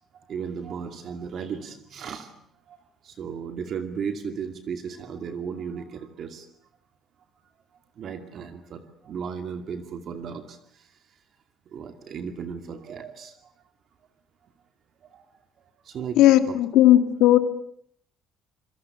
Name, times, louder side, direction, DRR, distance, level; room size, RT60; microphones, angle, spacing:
voice 1, 0.3-2.4 2.7-2.8 3.0-6.5 8.0-10.6 11.7-13.4 15.1-15.2 15.8-16.2 16.5-16.6, right 6 dB, 45° right, 7 dB, 2.4 m, -35 dB
voice 2, 16.2-17.4, left 13 dB, 85° left, 9 dB, 2.6 m, -16 dB
27.5 x 23.5 x 8.4 m, 0.65 s
cardioid pair, 165°, 0 cm